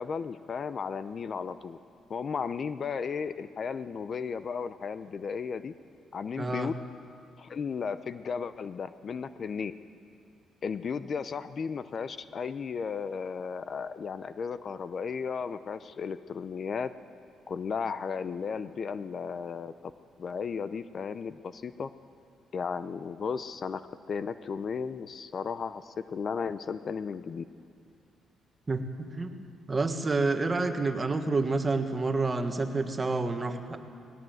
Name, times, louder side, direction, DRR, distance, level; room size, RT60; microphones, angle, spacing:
voice 1, 0.0-1.8 2.1-5.7 6.1-6.7 7.4-9.7 10.6-16.9 17.5-19.9 20.2-21.9 22.5-23.8 24.1-27.4, left 6 dB, 50° left, 13 dB, 0.7 m, -34 dB
voice 2, 6.4-6.7 28.7-33.8, right 3 dB, 25° right, 6 dB, 1.7 m, -29 dB
19.0 x 18.5 x 7.9 m, 2.3 s
cardioid pair, 90°, 0 cm